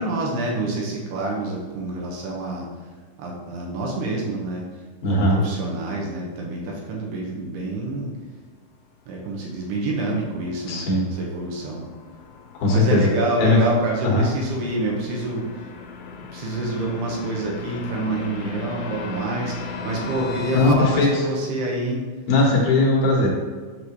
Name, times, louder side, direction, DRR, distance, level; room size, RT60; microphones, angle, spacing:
voice 1, 0.0-2.7 3.2-4.6 5.1-8.1 9.1-10.9 11.1-11.8 12.7-15.7 16.1-22.0, right 2 dB, 75° right, -2 dB, 2.6 m, -27 dB
voice 2, 5.0-5.4 10.7-11.0 12.6-13.1 13.4-13.6 14.0-14.3 20.5-21.2 22.3-23.3, left 2 dB, 60° left, -3 dB, 2.9 m, -18 dB
sound 1, 9.3-20.7, left 5 dB, 85° left, 3.2 m, -37 dB
8.5 x 6.7 x 3.1 m, 1.5 s
omnidirectional pair, 5.5 m